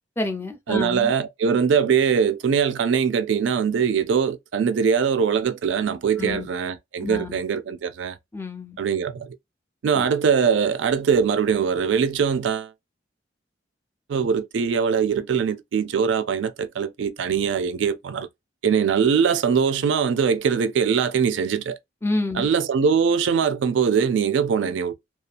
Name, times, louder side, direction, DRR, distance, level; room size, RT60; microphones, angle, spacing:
voice 1, 0.2-1.1 6.2-6.5 7.0-7.4 8.3-8.8 9.9-10.0 22.0-22.5, left 2 dB, 15° left, 0.5 m, -28 dB
voice 2, 0.7-8.2 8.8-9.3 9.8-12.7 14.1-18.3 18.6-21.8 22.3-24.9, right 6 dB, 75° right, 0.3 m, -22 dB
2.7 x 2.3 x 2.5 m
head